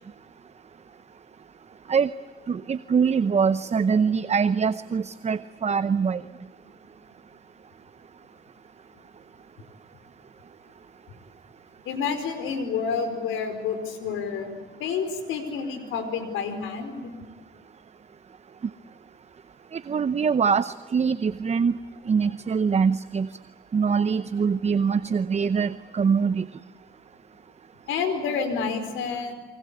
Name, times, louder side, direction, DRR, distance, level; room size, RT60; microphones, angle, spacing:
voice 1, 2.5-6.2 19.7-21.8 22.1-23.3 23.7-26.5, right 6 dB, 35° right, 14 dB, 0.8 m, -23 dB
voice 2, 11.8-14.5 14.8-17.1 27.9-29.3, left 5 dB, 90° left, 9 dB, 4.8 m, -29 dB
28.5 x 24.0 x 8.4 m, 1.2 s
cardioid pair, 90°, 20 cm